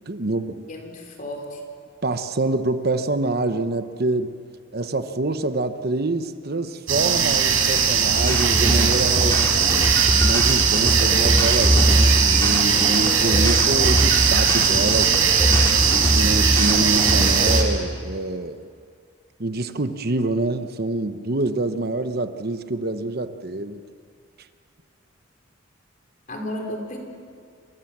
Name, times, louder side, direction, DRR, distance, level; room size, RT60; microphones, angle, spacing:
voice 1, 0.1-0.6 2.0-4.4 4.7-9.5 10.2-15.2 15.9-18.7 19.4-23.8, right 2 dB, 50° right, 9 dB, 1.0 m, -26 dB
voice 2, 0.7-1.6 26.3-27.0, left 1 dB, 40° left, 3 dB, 4.4 m, -33 dB
sound 1, 6.9-17.6, right 7 dB, 85° right, 4.9 m, -19 dB
sound 2, 8.2-17.6, equal, 15° left, 4.6 m, -22 dB
27.0 x 27.0 x 7.4 m, 2.3 s
head